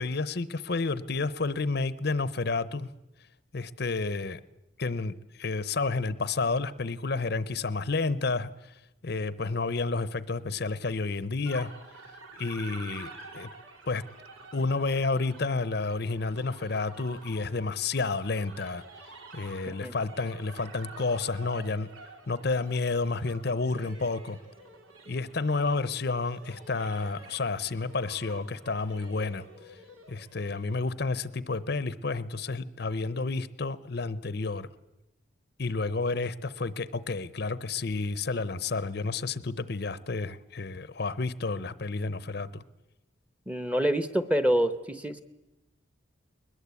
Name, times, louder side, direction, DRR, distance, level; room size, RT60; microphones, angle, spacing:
voice 1, 0.0-2.9 3.5-4.4 4.8-8.7 9.0-11.7 12.4-13.5 13.9-14.0 14.5-18.8 19.3-21.9 22.3-24.4 25.1-29.8 30.1-34.7 35.6-42.6, left 3 dB, 50° left, 17 dB, 0.7 m, -30 dB
sound 1, 11.4-30.9, right 2 dB, 90° right, 3.9 m, -49 dB
voice 2, 43.5-45.2, equal, 5° right, 12 dB, 1.0 m, -27 dB
21.5 x 20.5 x 8.3 m, 0.96 s
head